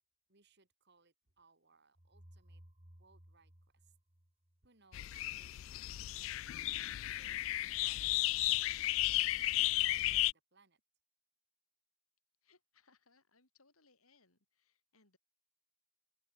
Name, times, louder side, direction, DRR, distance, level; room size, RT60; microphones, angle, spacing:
voice 1, 0.3-2.6 3.0-3.9 4.6-6.9 7.2-8.9 9.3-10.8, right 4 dB, 50° right, 3.1 m, -69 dB
sound 1, 2.0-4.9, equal, 30° right, 2.5 m, -60 dB
sound 2, 4.9-10.3, left 17 dB, 65° left, 0.3 m, -34 dB
voice 2, 12.4-15.2, left 4 dB, 90° left, 6.2 m, -70 dB
open air
head